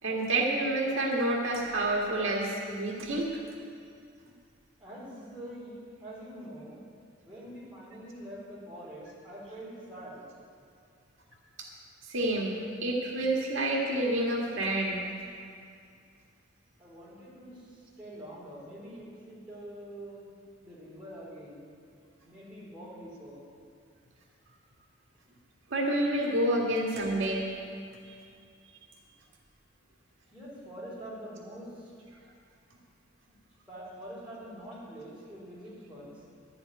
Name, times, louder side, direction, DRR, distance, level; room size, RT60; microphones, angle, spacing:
voice 1, 0.0-3.3 11.6-11.7 12.1-15.0 25.7-27.5, right 1 dB, 75° right, -2 dB, 1.7 m, -28 dB
voice 2, 4.8-6.8 7.2-10.3 16.8-20.3 20.6-21.7 22.2-23.5 30.3-31.9 33.7-36.2, right 1 dB, 5° right, -9 dB, 4.1 m, -45 dB
11.5 x 7.0 x 9.3 m, 2.3 s
head